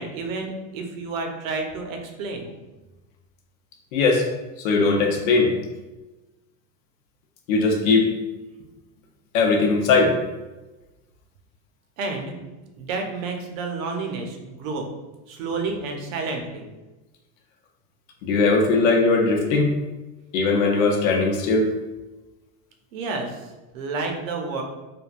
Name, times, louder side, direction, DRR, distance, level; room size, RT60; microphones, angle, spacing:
voice 1, 0.0-2.5 12.0-12.3 12.8-14.9 15.3-16.7 22.9-23.5 23.7-24.6, right 3 dB, 90° right, 3 dB, 0.7 m, -30 dB
voice 2, 3.9-4.2 4.6-5.5 7.5-8.1 9.3-10.1 18.2-19.7 20.3-21.7, left 3 dB, 80° left, 2 dB, 0.7 m, -19 dB
3.4 x 2.2 x 2.4 m, 1.1 s
supercardioid pair, 160°, 39 cm